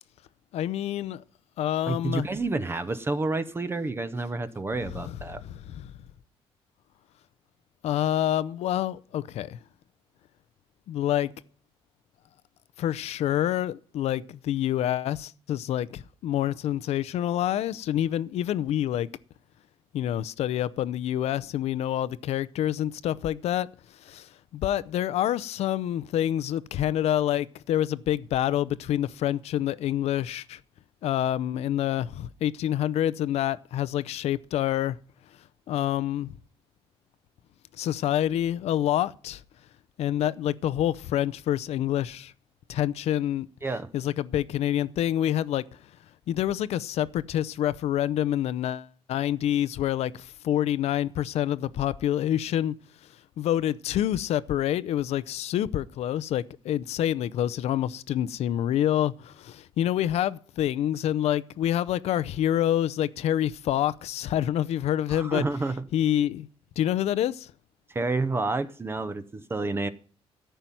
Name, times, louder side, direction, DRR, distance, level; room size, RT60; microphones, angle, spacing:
voice 1, 0.5-1.2 1.6-2.3 4.9-5.2 5.4-5.9 7.8-9.6 10.9-11.3 12.8-19.1 19.9-23.7 24.0-30.6 31.0-35.0 35.7-36.4 37.8-39.4 40.0-42.3 42.7-43.5 43.9-45.6 46.3-52.7 53.4-65.5 65.9-66.5 66.8-67.5, left 11 dB, 80° left, 0.6 m, -27 dB
voice 2, 1.9-5.4 43.6-43.9 65.1-65.9 67.9-69.9, right 3 dB, 20° right, 0.7 m, -29 dB
13.5 x 5.7 x 9.1 m
cardioid pair, 125°, 11 cm